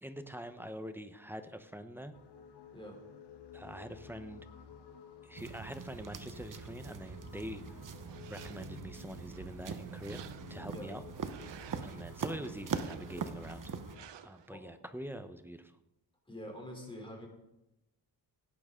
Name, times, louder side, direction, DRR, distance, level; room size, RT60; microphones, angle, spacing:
voice 1, 0.0-2.1 3.5-4.5 5.2-7.8 8.3-10.2 10.5-11.0 11.8-13.7 14.2-15.7, equal, 5° right, 8 dB, 0.9 m, -44 dB
sound 1, 2.1-14.1, left 7 dB, 75° left, 1.3 m, -53 dB
voice 2, 2.7-3.0 10.7-10.9 14.5-14.7 16.3-17.3, equal, 10° left, 1 dB, 3.3 m, -45 dB
sound 2, 5.3-14.0, right 6 dB, 50° right, 1.0 m, -42 dB
sound 3, 7.9-8.9 9.4-10.7 11.1-12.0 12.6-13.4 13.9-14.5, right 10 dB, 85° right, 0.8 m, -54 dB
17.0 x 9.1 x 3.7 m, 0.90 s
wide cardioid pair, 105°, 41 cm